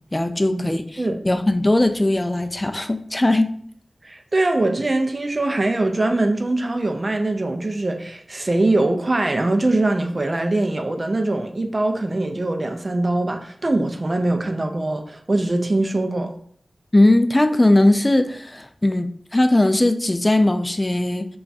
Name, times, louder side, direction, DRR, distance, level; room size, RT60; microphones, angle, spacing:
voice 1, 0.1-0.8 1.2-3.5 16.9-21.3, left 1 dB, 25° left, 0.3 m, -19 dB
voice 2, 4.0-16.3, right 2 dB, 45° right, 0.4 m, -22 dB
3.4 x 2.3 x 4.0 m
wide cardioid pair, 70°, 0 cm